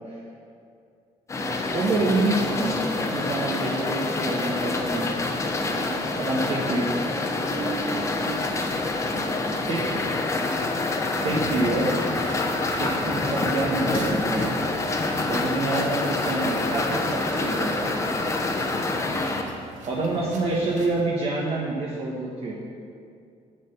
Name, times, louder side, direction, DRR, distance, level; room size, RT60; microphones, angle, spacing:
sound 1, 1.3-19.4, left 2 dB, 25° left, 0.9 m, -27 dB
voice 1, 1.7-5.2 6.1-6.9 9.6-9.8 11.2-11.9 12.7-14.6 15.3-18.0 19.8-22.6, right 2 dB, 50° right, -4 dB, 1.3 m, -27 dB
voice 2, 6.5-6.8 7.4-10.8 15.8-16.1 20.2-20.5, right 3 dB, 25° right, -6 dB, 3.0 m, -39 dB
sound 2, 11.8-21.0, right 2 dB, 80° right, 1.5 m, -45 dB
7.9 x 7.5 x 7.0 m, 2.4 s
cardioid pair, 130°, 12 cm